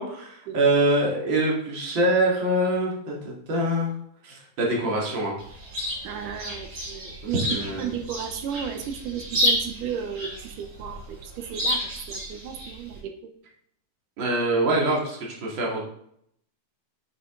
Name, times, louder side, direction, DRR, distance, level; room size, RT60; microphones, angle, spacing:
voice 1, 0.0-3.9 4.2-5.3 7.3-7.9 14.2-15.8, right 1 dB, 40° right, -2 dB, 2.8 m, -24 dB
Chirp tweet, 5.4-13.0, equal, 65° right, 5.7 m, -31 dB
voice 2, 6.0-13.1, right 8 dB, 90° right, 7 dB, 2.5 m, -34 dB
9.2 x 8.3 x 3.8 m, 0.70 s
omnidirectional pair, 3.6 m